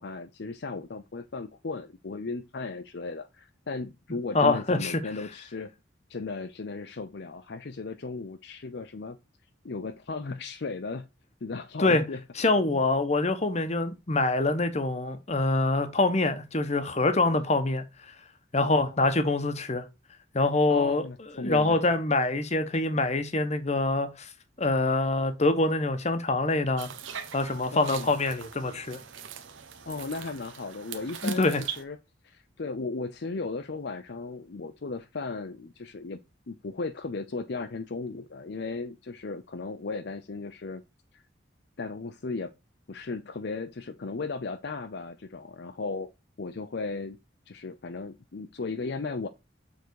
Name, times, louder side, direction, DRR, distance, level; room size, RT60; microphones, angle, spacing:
voice 1, 0.0-5.7 6.1-9.2 9.6-11.1 11.4-12.2 12.7-12.8 18.6-19.0 20.7-21.8 27.7-28.1 29.9-31.5 31.8-32.0 32.2-36.2 36.5-40.8 41.1-41.2 41.8-42.5 42.9-46.1 46.4-47.2 47.5-49.3, left 3 dB, 60° left, 0.6 m, -36 dB
voice 2, 4.3-5.0 11.8-12.0 12.4-17.8 18.5-19.8 20.3-21.0 21.3-24.3 24.6-26.9 27.3-29.0 31.2-31.6, left 2 dB, 35° left, 1.0 m, -25 dB
sound 1, 26.8-31.8, right 8 dB, 85° right, 1.1 m, -41 dB
7.0 x 3.9 x 4.6 m
head